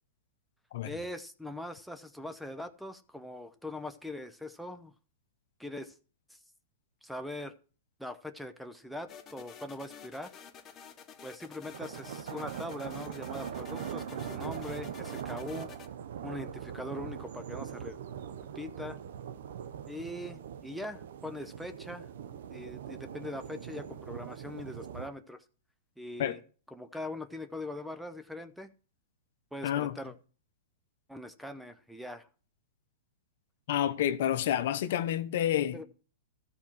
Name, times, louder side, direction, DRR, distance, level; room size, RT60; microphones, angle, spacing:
voice 1, 0.8-4.9 5.6-5.9 6.3-6.4 7.0-7.5 8.0-10.3 11.2-15.7 16.2-18.0 18.5-19.0 19.9-25.4 26.0-26.4 26.7-28.7 29.5-30.1 31.1-32.3 35.7-35.8, left 1 dB, ahead, 0.7 m, -41 dB
sound 1, 9.1-15.9, left 7 dB, 25° left, 1.0 m, -51 dB
sound 2, 11.7-25.1, right 9 dB, 70° right, 0.8 m, -41 dB
voice 2, 29.6-30.0 33.7-35.8, left 11 dB, 65° left, 0.9 m, -29 dB
13.0 x 4.4 x 7.4 m
hypercardioid pair, 130°, 0 cm